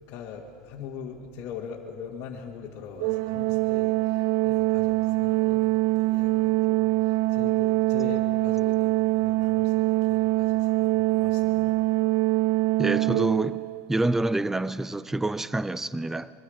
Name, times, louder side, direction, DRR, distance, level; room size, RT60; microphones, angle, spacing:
voice 1, 0.1-11.8, left 7 dB, 50° left, 1.9 m, -42 dB
Organ, 3.0-13.9, right 20 dB, 60° right, 0.4 m, -24 dB
voice 2, 12.8-13.6 13.9-16.3, right 2 dB, 5° right, 0.4 m, -27 dB
23.5 x 23.0 x 5.1 m
supercardioid pair, 135°, 7 cm